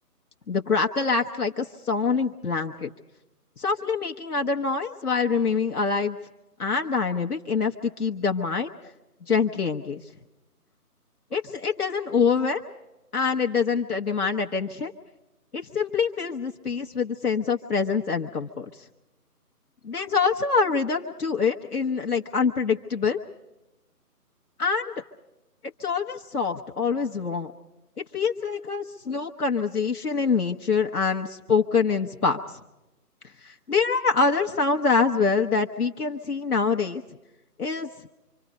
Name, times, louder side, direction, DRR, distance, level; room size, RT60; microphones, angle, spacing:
voice 1, 0.5-2.9 3.6-6.2 6.6-8.9 9.3-10.0 11.3-12.6 13.1-14.9 15.5-18.7 19.8-23.2 24.6-24.9 25.8-27.5 28.0-32.6 33.4-37.0 37.6-37.9, left 5 dB, 70° left, 3 dB, 1.3 m, -25 dB
26.5 x 25.0 x 5.2 m, 0.99 s
figure-of-eight pair, 170°, 47 cm